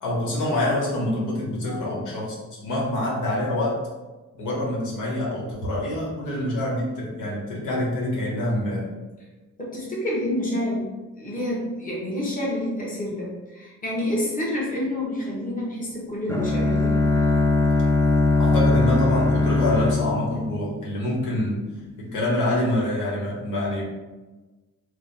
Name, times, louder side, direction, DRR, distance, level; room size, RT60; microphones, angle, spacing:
voice 1, 0.0-3.8 4.3-8.9 18.4-21.6 22.0-23.8, left 1 dB, 80° left, -4 dB, 1.2 m, -26 dB
voice 2, 1.6-2.0 9.6-10.9 11.2-17.0, left 1 dB, 25° left, -5 dB, 1.3 m, -28 dB
Bowed string instrument, 16.3-21.2, left 3 dB, 10° left, 0.5 m, -21 dB
3.3 x 2.2 x 4.1 m, 1.2 s
cardioid pair, 90°, 30 cm